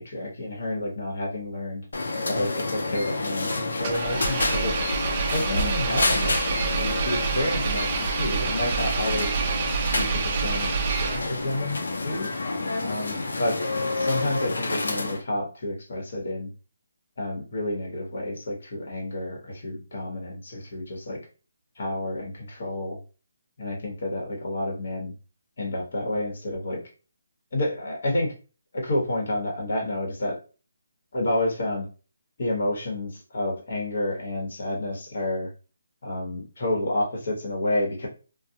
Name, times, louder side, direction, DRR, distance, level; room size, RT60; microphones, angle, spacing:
voice 1, 0.0-1.8 2.2-4.8 5.3-9.4 9.9-12.3 12.8-13.6 14.0-16.5 17.2-21.2 21.8-23.0 23.6-25.1 25.6-26.8 27.5-28.3 28.7-30.4 31.1-31.9 32.4-35.5 36.0-38.1, left 1 dB, 60° left, 0 dB, 1.1 m, -29 dB
sound 1, 1.9-15.2, left 2 dB, 80° left, 0.6 m, -29 dB
Engine, 3.8-11.6, right 6 dB, 30° right, 0.3 m, -28 dB
2.3 x 2.0 x 2.7 m, 0.35 s
hypercardioid pair, 165°, 0 cm